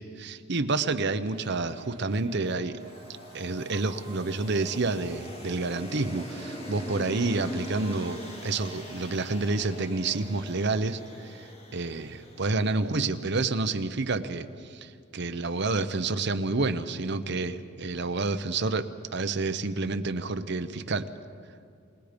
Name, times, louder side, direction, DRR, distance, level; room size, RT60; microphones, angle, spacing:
voice 1, 0.2-2.8 3.3-11.4 11.7-21.1, right 3 dB, 60° right, 10 dB, 0.9 m, -29 dB
sound 1, 1.3-10.8, right 3 dB, 25° right, 2.1 m, -49 dB
sound 2, 2.8-13.1, left 1 dB, 30° left, 2.5 m, -43 dB
28.0 x 19.0 x 5.2 m, 2.5 s
head